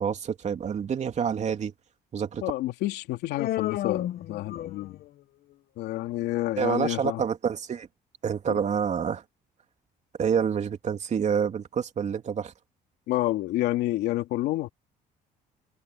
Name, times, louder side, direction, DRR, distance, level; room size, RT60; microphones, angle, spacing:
voice 1, 0.0-1.7 2.1-2.4 6.6-7.9 8.2-9.2 10.2-12.5, right 7 dB, 45° right, 3.0 m, -27 dB
voice 2, 2.4-5.0 5.8-7.2 8.5-8.6 13.1-14.7, left 16 dB, 85° left, 2.8 m, -29 dB
Human voice, 3.4-5.1, left 13 dB, 65° left, 1.1 m, -31 dB
cardioid pair, 110°, 17 cm